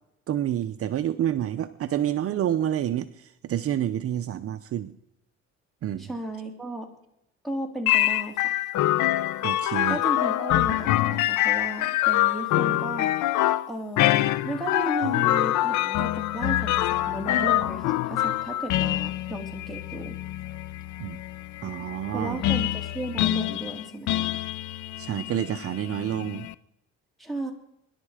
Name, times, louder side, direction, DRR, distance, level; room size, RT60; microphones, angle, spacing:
voice 1, 0.3-4.9 5.8-6.1 9.4-10.0 21.0-21.2 21.6-22.4 25.0-26.5, right 11 dB, 50° right, 9 dB, 0.7 m, -28 dB
voice 2, 6.0-6.9 7.4-8.5 9.9-13.1 13.7-14.1 14.4-20.2 22.1-24.3 27.2-27.5, right 1 dB, ahead, 3 dB, 3.0 m, -34 dB
sound 1, 7.9-26.5, left 14 dB, 80° left, 0.7 m, -25 dB
25.0 x 11.0 x 5.0 m, 0.81 s
cardioid pair, 120°, 29 cm